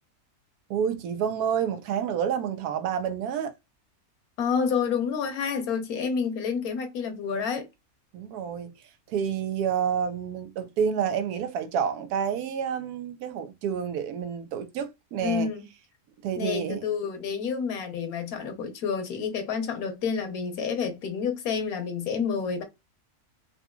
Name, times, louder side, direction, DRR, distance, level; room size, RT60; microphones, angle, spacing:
voice 1, 0.7-3.5 8.1-8.7 9.1-15.5 16.2-16.8, right 8 dB, 85° right, 1.1 m, -29 dB
voice 2, 4.4-7.7 15.2-15.6 16.4-22.6, left 6 dB, 75° left, 1.3 m, -29 dB
3.9 x 2.8 x 2.2 m
omnidirectional pair, 1.6 m